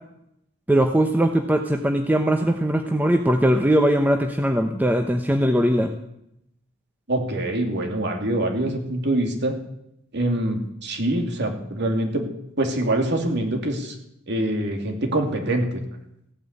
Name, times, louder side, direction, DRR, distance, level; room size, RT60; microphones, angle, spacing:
voice 1, 0.7-5.9, right 1 dB, 10° right, 4 dB, 0.9 m, -20 dB
voice 2, 7.1-9.5 10.1-12.2 12.6-13.9 14.3-15.8, right 1 dB, 60° right, 3 dB, 2.8 m, -24 dB
16.0 x 9.1 x 8.3 m, 0.78 s
head